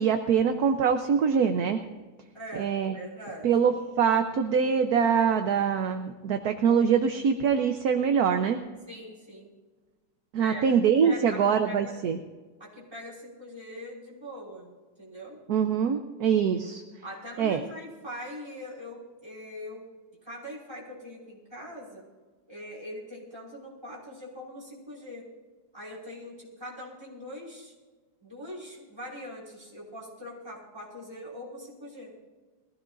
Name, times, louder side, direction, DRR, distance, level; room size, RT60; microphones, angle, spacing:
voice 1, 0.0-1.8 2.6-3.0 3.4-8.6 10.3-12.2 15.5-16.8 17.4-17.6, right 7 dB, 65° right, 6 dB, 1.2 m, -24 dB
voice 2, 2.3-3.7 8.9-9.5 10.4-10.6 11.0-12.0 12.6-15.4 17.0-19.9 20.2-22.0 22.5-25.3 25.7-27.7 28.2-32.1, equal, 15° right, -5 dB, 5.3 m, -42 dB
21.5 x 16.0 x 2.5 m, 1.3 s
omnidirectional pair, 1.9 m